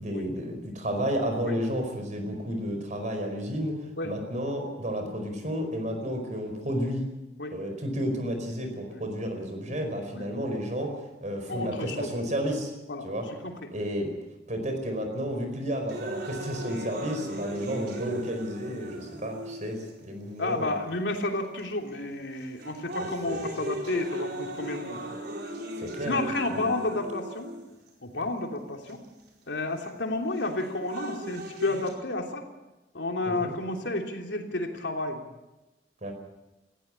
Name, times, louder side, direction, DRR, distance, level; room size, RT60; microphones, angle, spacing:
voice 1, 0.0-3.7 4.0-7.0 7.5-12.7 13.0-13.2 13.7-14.1 14.5-20.8 23.3-23.4 25.8-26.3 26.5-26.7 33.2-33.5 36.0-36.1, equal, 45° right, 5 dB, 4.9 m, -32 dB
voice 2, 11.5-12.1 12.9-13.7 20.4-25.0 26.0-27.5 28.0-29.0 29.5-32.4 32.9-35.2, left 2 dB, 90° left, 3 dB, 3.1 m, -31 dB
sound 1, 15.9-19.9 20.6-20.7 21.6-21.9 22.4-27.9 28.9-29.0 30.4-31.9, right 1 dB, 65° right, 4.8 m, -37 dB
19.0 x 15.5 x 9.8 m, 1.0 s
head